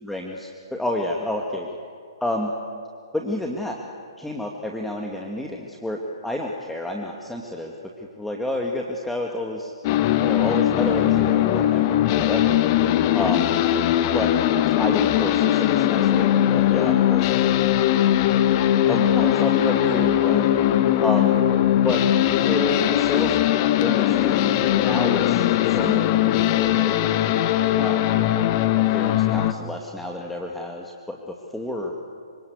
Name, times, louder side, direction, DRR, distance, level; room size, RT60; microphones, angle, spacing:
voice 1, 0.0-1.7 2.2-2.5 3.1-3.8 4.2-9.7 10.2-12.6 13.1-13.5 14.1-14.3 14.8-17.6 18.8-20.6 21.0-21.4 21.8-22.0 22.4-23.4 23.8-27.0 27.7-28.2 28.9-31.9, left 1 dB, 5° left, 0 dB, 2.3 m, -30 dB
sound 1, 9.8-29.5, left 12 dB, 40° left, 1.5 m, -20 dB
27.0 x 25.5 x 8.2 m, 2.2 s
figure-of-eight pair, 125°, 3 cm